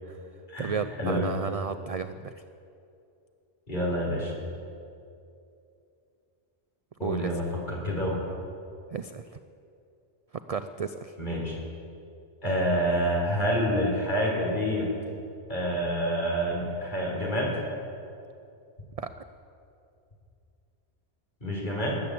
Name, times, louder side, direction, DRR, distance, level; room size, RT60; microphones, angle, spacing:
voice 1, 0.6-2.3 7.0-7.3 8.9-9.2 10.5-11.1 19.0-19.1, right 6 dB, 60° right, 11 dB, 0.4 m, -33 dB
voice 2, 3.7-4.3 7.0-8.2 11.2-11.5 12.4-14.9 15.5-17.5 21.4-21.9, equal, 45° left, -3 dB, 4.0 m, -27 dB
19.5 x 8.6 x 7.6 m, 2.6 s
omnidirectional pair, 1.1 m